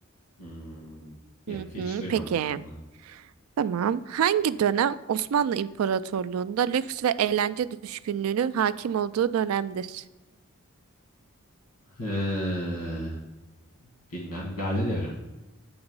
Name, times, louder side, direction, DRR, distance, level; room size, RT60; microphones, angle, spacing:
voice 1, 0.4-1.2 1.5-2.7 11.9-13.2 14.1-15.2, equal, 70° left, -2 dB, 1.5 m, -32 dB
voice 2, 1.5-2.6 3.1-3.2 3.6-10.0, right 8 dB, 80° right, 16 dB, 0.3 m, -26 dB
8.7 x 2.9 x 5.4 m, 1.1 s
head